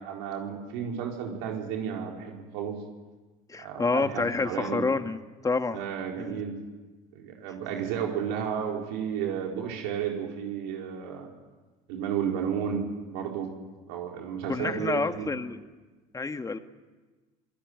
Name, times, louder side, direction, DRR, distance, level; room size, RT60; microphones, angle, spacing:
voice 1, 0.0-2.8 3.6-4.8 5.7-6.6 7.1-11.3 11.9-13.5 13.9-15.3, right 8 dB, 75° right, 0 dB, 4.7 m, -32 dB
voice 2, 3.5-5.8 6.2-6.4 14.5-15.6 16.1-16.6, left 3 dB, 20° left, 8 dB, 1.9 m, -28 dB
27.0 x 19.0 x 9.6 m, 1.2 s
supercardioid pair, 85°, 18 cm